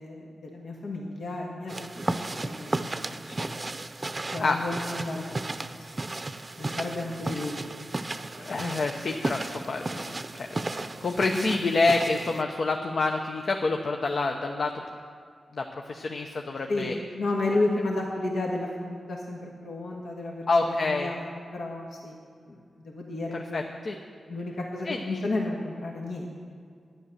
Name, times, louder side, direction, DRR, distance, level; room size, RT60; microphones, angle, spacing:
voice 1, 0.0-3.5 4.3-5.9 6.6-7.8 11.3-11.6 16.7-21.3 21.5-22.2 22.5-23.6 24.3-26.4, left 2 dB, 80° left, -2 dB, 1.6 m, -32 dB
sound 1, 1.7-12.4, right 2 dB, 35° right, 0.6 m, -34 dB
voice 2, 8.4-14.7 15.5-16.9 20.5-21.1 23.5-24.0 24.9-25.2, left 3 dB, 60° left, 3 dB, 0.8 m, -27 dB
11.5 x 10.0 x 6.7 m, 2.1 s
cardioid pair, 65°, 0 cm